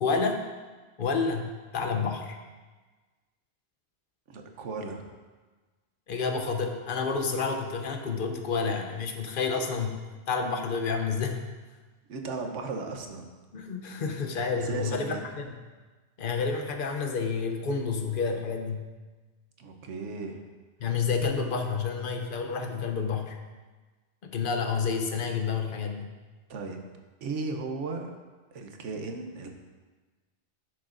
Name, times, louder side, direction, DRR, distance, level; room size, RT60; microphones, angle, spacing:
voice 1, 0.0-0.4 1.0-2.4 6.1-10.0 10.3-11.4 13.5-15.6 16.2-18.8 20.8-23.4 24.2-26.1, left 5 dB, 55° left, 4 dB, 0.8 m, -29 dB
voice 2, 4.3-5.1 12.1-13.3 14.6-15.3 19.6-20.4 26.5-26.8 27.2-28.1 28.5-29.5, right 3 dB, 80° right, 4 dB, 1.1 m, -36 dB
10.5 x 6.3 x 2.5 m, 1.3 s
omnidirectional pair, 1.2 m